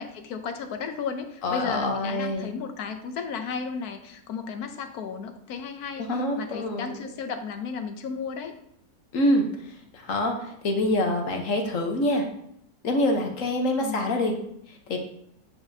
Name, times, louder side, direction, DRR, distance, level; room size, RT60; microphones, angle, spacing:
voice 1, 0.0-6.1 6.4-8.5 13.8-14.1, left 5 dB, 75° left, 7 dB, 1.2 m, -34 dB
voice 2, 1.4-2.5 6.1-7.0 9.1-12.2 12.8-14.3 14.7-15.0, left 1 dB, 60° left, 3 dB, 1.3 m, -26 dB
9.0 x 5.1 x 2.7 m, 0.74 s
omnidirectional pair, 1.7 m